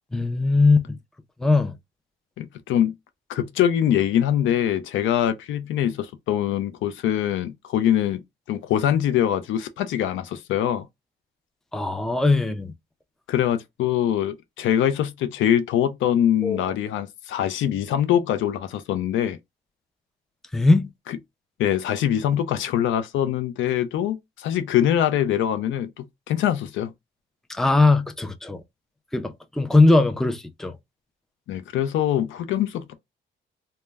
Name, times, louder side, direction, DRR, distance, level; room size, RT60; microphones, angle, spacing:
voice 1, 0.1-1.0 1.4-1.8 11.7-12.7 16.4-16.6 20.5-20.9 27.5-28.6 29.1-30.7, left 3 dB, ahead, 0.4 m, -20 dB
voice 2, 2.4-2.9 3.3-8.2 8.5-10.9 13.3-19.4 21.1-21.2 21.6-26.9 31.5-32.9, left 10 dB, 75° left, 0.4 m, -23 dB
2.1 x 2.1 x 3.3 m
cardioid pair, 90°, 20 cm